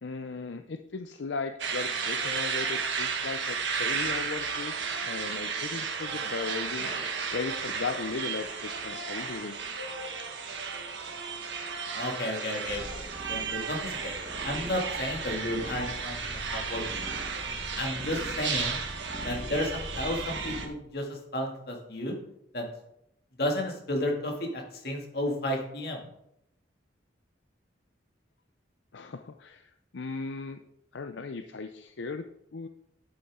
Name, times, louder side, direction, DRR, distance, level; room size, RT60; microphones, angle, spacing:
voice 1, 0.0-6.9 7.3-9.6 28.9-30.6 30.9-32.3 32.5-32.7, left 4 dB, 75° left, 8 dB, 0.6 m, -37 dB
sound 1, 1.6-20.7, right 5 dB, 75° right, 1.4 m, -34 dB
voice 2, 11.9-14.1 14.4-17.1 17.8-18.8 19.2-22.2 22.5-22.7 23.4-26.0, left 1 dB, 55° left, 1 dB, 2.3 m, -32 dB
sound 2, 12.7-20.7, equal, 20° left, 1.4 m, -42 dB
11.5 x 8.5 x 3.7 m, 0.78 s
head